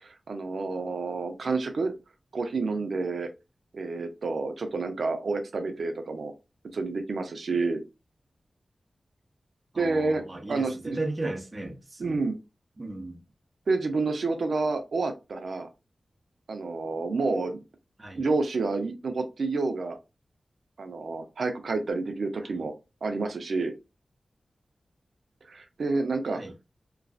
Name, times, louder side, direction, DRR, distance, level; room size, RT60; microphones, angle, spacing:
voice 1, 0.0-2.0 2.3-3.3 3.7-6.3 6.7-7.8 9.8-11.0 12.0-12.4 13.7-15.7 16.5-17.6 18.2-20.0 20.8-22.7 23.0-23.7 25.5-26.4, right 3 dB, 85° right, 0.5 m, -29 dB
voice 2, 9.7-12.2 12.8-13.2 18.0-18.2 26.3-26.5, right 2 dB, 35° right, 0.8 m, -35 dB
3.0 x 2.5 x 2.3 m
wide cardioid pair, 60°, 0 cm